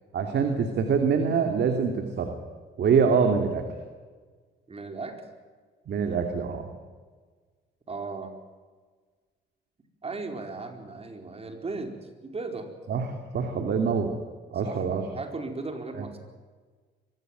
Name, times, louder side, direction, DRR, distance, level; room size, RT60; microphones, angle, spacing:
voice 1, 0.1-2.4 2.8-3.7 5.9-6.7 12.9-13.1 13.3-14.2 14.5-15.1 16.0-16.1, right 6 dB, 60° right, 5 dB, 2.7 m, -25 dB
voice 2, 4.7-5.2 7.9-8.4 10.0-12.0 12.2-12.7 14.6-16.2, right 3 dB, 30° right, 5 dB, 4.6 m, -36 dB
23.5 x 16.5 x 9.2 m, 1.5 s
cardioid pair, 85°, 19 cm